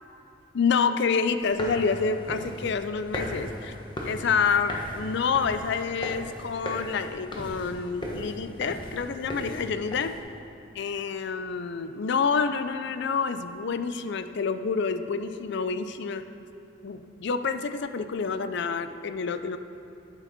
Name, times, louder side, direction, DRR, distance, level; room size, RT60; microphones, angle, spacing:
voice 1, 0.5-3.8 4.0-10.1 10.7-16.3 16.8-19.6, left 5 dB, 65° left, 10 dB, 0.5 m, -28 dB
sound 1, 1.4-10.2, left 1 dB, 25° left, 1.1 m, -38 dB
9.2 x 7.5 x 5.2 m, 3.0 s
head